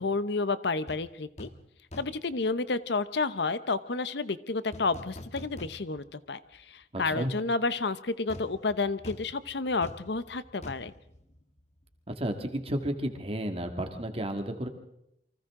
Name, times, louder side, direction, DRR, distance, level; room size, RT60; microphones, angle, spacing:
voice 1, 0.0-1.5 2.0-10.9, left 3 dB, 70° left, 14 dB, 0.8 m, -30 dB
Desk Pound, 0.9-1.0 1.4-1.6 1.9-2.3 4.7-6.2 6.5-6.6 8.3-12.0 12.2-12.4, left 1 dB, 40° left, 1.6 m, -45 dB
voice 2, 6.9-7.3 12.1-14.7, right 1 dB, 35° right, 5 dB, 2.1 m, -32 dB
29.0 x 24.0 x 3.8 m, 0.80 s
head